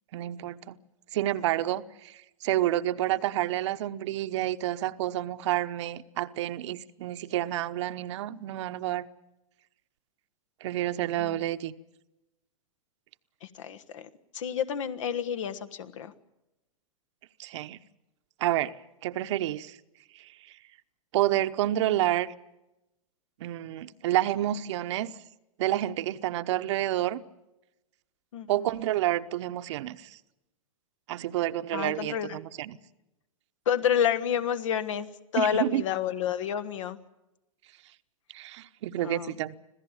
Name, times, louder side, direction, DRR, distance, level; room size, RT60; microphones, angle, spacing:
voice 1, 0.1-0.8 1.1-9.1 10.6-11.7 17.4-17.8 18.4-18.7 19.0-19.8 20.1-20.3 21.1-22.3 23.4-25.1 25.6-27.2 28.5-30.2 31.1-32.8 35.4-35.8 38.3-39.6, right 14 dB, 55° right, 11 dB, 1.0 m, -29 dB
voice 2, 13.4-16.1 28.3-28.7 31.7-32.4 33.6-37.0 39.0-39.3, left 8 dB, 60° left, 13 dB, 1.5 m, -30 dB
26.0 x 16.0 x 9.0 m, 0.94 s
hypercardioid pair, 115°, 18 cm